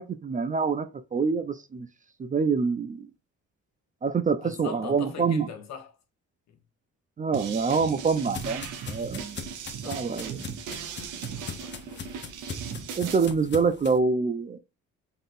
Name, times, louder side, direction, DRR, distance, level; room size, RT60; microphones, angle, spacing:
voice 1, 0.0-1.9 2.2-3.1 4.0-5.5 7.2-9.4 9.9-10.5 13.0-14.6, right 5 dB, 25° right, 0.4 m, -26 dB
voice 2, 4.4-5.9 6.5-6.6 9.8-10.1 11.4-12.2, left 6 dB, 60° left, 1.1 m, -41 dB
sound 1, 7.3-13.3, right 7 dB, 85° right, 0.8 m, -38 dB
sound 2, 7.4-14.0, left 5 dB, 35° left, 0.8 m, -41 dB
3.9 x 3.7 x 2.5 m
cardioid pair, 90°, 30 cm